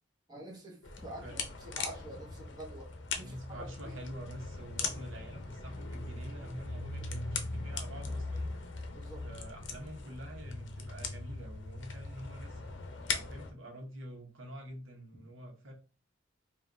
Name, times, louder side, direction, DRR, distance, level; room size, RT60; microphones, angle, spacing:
voice 1, 0.3-2.9 3.1-3.7 8.9-9.2, right 1 dB, 20° right, 1.1 m, -47 dB
sound 1, 0.8-13.5, left 3 dB, 65° left, 0.7 m, -40 dB
voice 2, 3.2-8.5 9.2-12.6 13.1-15.7, equal, 85° right, 1.1 m, -47 dB
5.0 x 2.5 x 2.7 m
head